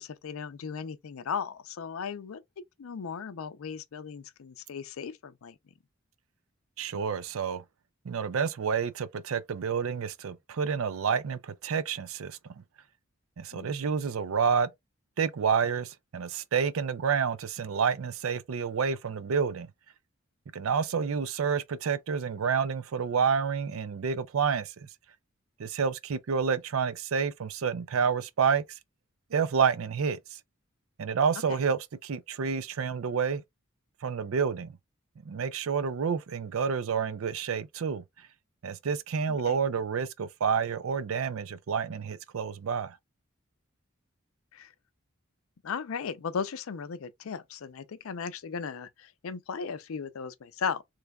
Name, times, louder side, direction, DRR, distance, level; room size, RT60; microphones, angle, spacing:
voice 1, 0.0-2.4 2.8-5.6 13.5-13.7 31.5-31.6 39.3-39.6 44.5-44.7 45.6-50.8, left 6 dB, 85° left, 0.5 m, -36 dB
voice 2, 6.8-7.6 8.0-12.4 13.4-14.7 15.2-19.7 20.5-24.9 25.6-28.6 29.3-30.4 31.0-33.4 34.0-34.7 35.3-38.0 38.6-43.0, right 6 dB, 85° right, 0.4 m, -29 dB
3.4 x 3.2 x 2.3 m
head